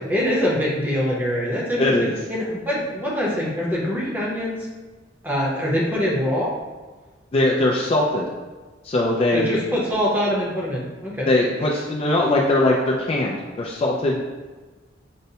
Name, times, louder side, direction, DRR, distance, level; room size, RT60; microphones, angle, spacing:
voice 1, 0.1-1.9 2.3-4.7 5.2-6.6 9.3-11.3, equal, 10° right, -5 dB, 0.7 m, -24 dB
voice 2, 1.8-2.2 7.3-8.3 8.8-9.6 11.3-14.2, left 2 dB, 30° left, -2 dB, 0.3 m, -21 dB
5.3 x 2.1 x 2.8 m, 1.3 s
head